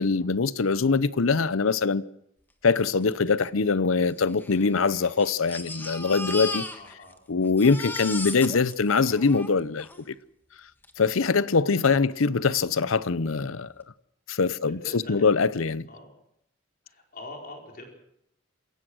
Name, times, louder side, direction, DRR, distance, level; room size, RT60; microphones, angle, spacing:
voice 1, 0.0-2.0 2.6-6.6 7.3-10.1 11.0-13.7 14.3-15.9, left 4 dB, 90° left, 0.7 m, -23 dB
Crying sobbing, 3.1-3.2 3.4-3.5 4.3-7.2 7.4-10.0 10.8-10.9 11.3-11.4, left 2 dB, 10° left, 1.4 m, -36 dB
voice 2, 6.8-7.2 14.8-15.5 15.9-16.1 16.8-17.9, left 2 dB, 45° left, 4.6 m, -43 dB
27.5 x 16.0 x 6.3 m
head